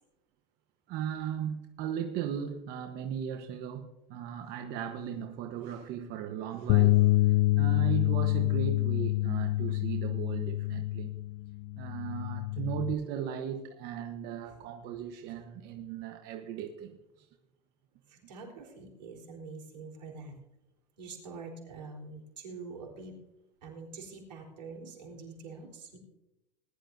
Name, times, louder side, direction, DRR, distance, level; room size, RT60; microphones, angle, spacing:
voice 1, 0.9-11.1 11.8-17.3, right 8 dB, 50° right, 6 dB, 1.1 m, -37 dB
Bass guitar, 6.7-12.9, left 18 dB, 45° left, 0.4 m, -27 dB
voice 2, 18.1-20.3 21.0-23.1 23.6-26.0, right 4 dB, 85° right, 0 dB, 3.8 m, -45 dB
20.0 x 11.5 x 2.7 m, 0.93 s
hypercardioid pair, 105°, 21 cm